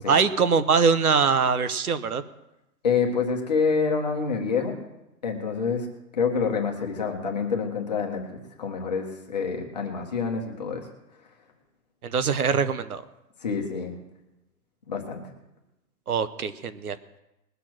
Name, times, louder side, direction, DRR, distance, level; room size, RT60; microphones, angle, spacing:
voice 1, 0.1-2.2 12.0-13.0 16.1-17.0, right 5 dB, 65° right, 13 dB, 1.0 m, -23 dB
voice 2, 2.8-4.8 5.2-5.9 6.1-10.9 13.4-13.9 14.9-15.3, left 5 dB, 25° left, 1 dB, 1.3 m, -27 dB
20.5 x 6.9 x 6.1 m, 0.92 s
hypercardioid pair, 175°, 49 cm